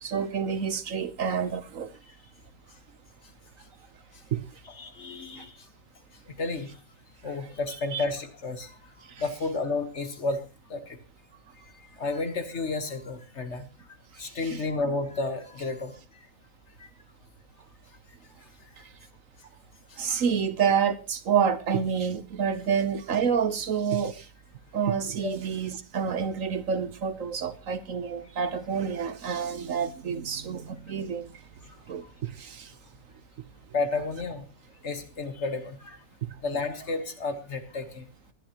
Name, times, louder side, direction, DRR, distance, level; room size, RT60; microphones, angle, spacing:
voice 1, 0.0-1.9 4.3-4.6 5.4-5.5 7.9-8.0 9.1-9.2 14.2-14.6 18.8-18.9 20.0-24.3 24.7-31.4 31.9-32.8, right 7 dB, 60° right, 1.2 m, -28 dB
voice 2, 4.6-5.7 6.3-6.7 7.2-8.8 9.2-10.4 10.7-11.0 11.6-13.7 14.2-15.9 16.8-16.9 25.2-25.4 32.0-32.1 33.7-34.4 34.8-36.0 36.4-38.1, left 3 dB, 50° left, 1.7 m, -32 dB
20.5 x 11.5 x 3.0 m
omnidirectional pair, 1.6 m